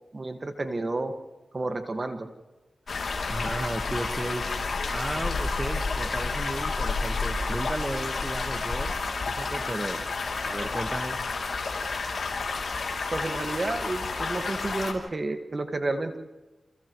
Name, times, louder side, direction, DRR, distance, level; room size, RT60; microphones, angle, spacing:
voice 1, 0.1-1.1 1.5-2.3 13.1-16.2, right 2 dB, 45° right, 6 dB, 1.9 m, -31 dB
sound 1, 2.9-14.9, left 4 dB, 75° left, 3.0 m, -30 dB
voice 2, 2.9-4.5 4.9-8.9 9.3-10.0 10.4-11.2, right 1 dB, 25° right, 6 dB, 1.5 m, -34 dB
29.0 x 28.0 x 3.2 m, 1.2 s
cardioid pair, 45°, 0 cm